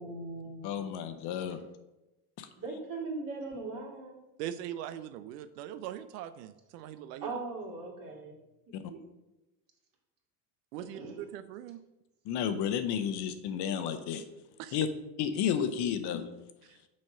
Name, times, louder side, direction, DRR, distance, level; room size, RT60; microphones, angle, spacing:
voice 1, 0.0-0.7 1.3-1.6 2.6-4.2 7.2-8.4 8.9-9.0 10.9-11.2, right 3 dB, 45° right, 0 dB, 2.3 m, -39 dB
voice 2, 0.6-1.6 2.4-2.5 8.7-8.8 12.2-14.2 14.7-14.9 15.2-16.3, left 8 dB, 55° left, 9 dB, 1.0 m, -32 dB
voice 3, 4.4-7.3 10.7-11.8 14.6-14.8 16.6-16.8, right 11 dB, 80° right, 12 dB, 0.6 m, -41 dB
6.4 x 4.2 x 6.0 m, 0.99 s
supercardioid pair, 100°, 48 cm